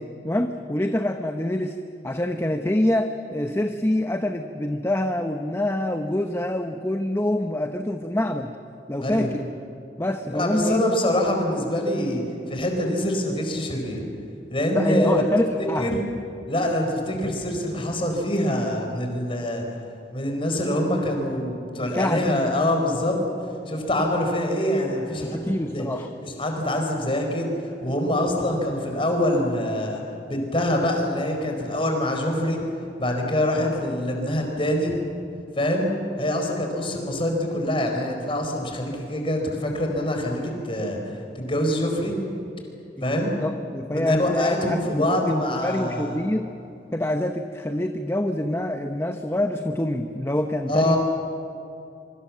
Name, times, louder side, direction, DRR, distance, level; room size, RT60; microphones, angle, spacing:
voice 1, 0.2-1.8 2.0-8.5 8.9-9.5 10.0-10.8 14.7-15.9 21.8-22.3 25.2-26.1 43.0-46.5 46.9-50.9, left 1 dB, 15° left, 6 dB, 0.9 m, -26 dB
voice 2, 10.3-12.2 12.5-14.1 14.5-15.2 15.8-16.0 16.5-19.6 20.1-23.2 23.7-25.9 26.2-30.0 30.3-32.6 33.0-35.0 35.6-35.9 36.2-41.0 41.3-42.2 43.0-43.3 43.9-46.2 50.7-51.0, left 1 dB, 30° left, 2 dB, 4.6 m, -25 dB
25.0 x 24.5 x 7.5 m, 2.7 s
head